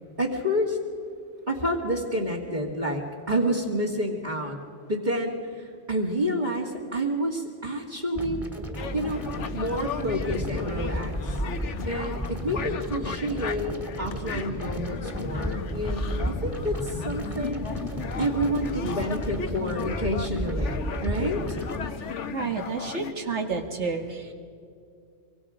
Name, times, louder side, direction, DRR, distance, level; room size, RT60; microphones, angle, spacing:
voice 1, 0.2-0.8 1.5-4.6 4.9-8.4 8.9-9.2 9.5-11.4 11.8-17.6 18.2-21.6, equal, 40° right, -3 dB, 2.4 m, -29 dB
sound 1, 8.1-21.9, equal, 10° right, 1.9 m, -33 dB
sound 2, 8.8-23.1, left 6 dB, 85° left, 1.3 m, -35 dB
voice 2, 22.3-24.3, right 4 dB, 75° right, 4 dB, 2.2 m, -30 dB
25.0 x 23.5 x 5.0 m, 2.4 s
omnidirectional pair, 1.2 m